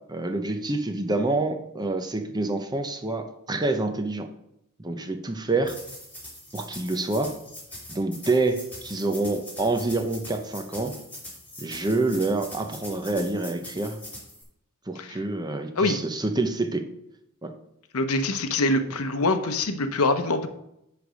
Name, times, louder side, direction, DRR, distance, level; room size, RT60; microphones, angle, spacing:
voice 1, 0.1-4.3 4.8-5.8 6.5-7.4 7.9-10.9 11.6-14.0 14.9-16.9 17.4-17.5, right 2 dB, 20° right, 6 dB, 0.7 m, -27 dB
sound 1, 5.6-14.4, left 1 dB, 5° left, 2.7 m, -42 dB
voice 2, 17.9-20.5, left 2 dB, 80° left, 9 dB, 0.8 m, -24 dB
9.9 x 3.4 x 6.3 m, 0.80 s
head